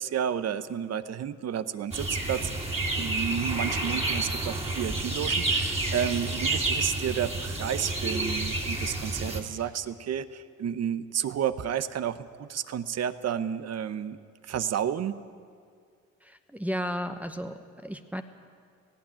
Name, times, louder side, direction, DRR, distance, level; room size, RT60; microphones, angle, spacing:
voice 1, 0.0-2.5 3.0-14.2 14.4-15.1, right 9 dB, 55° right, 13 dB, 0.9 m, -31 dB
sound 1, 1.9-9.4, right 2 dB, 20° right, 3.0 m, -29 dB
voice 2, 16.2-18.2, equal, 5° right, 6 dB, 1.0 m, -34 dB
18.0 x 16.5 x 9.0 m, 2.2 s
cardioid pair, 90°, 30 cm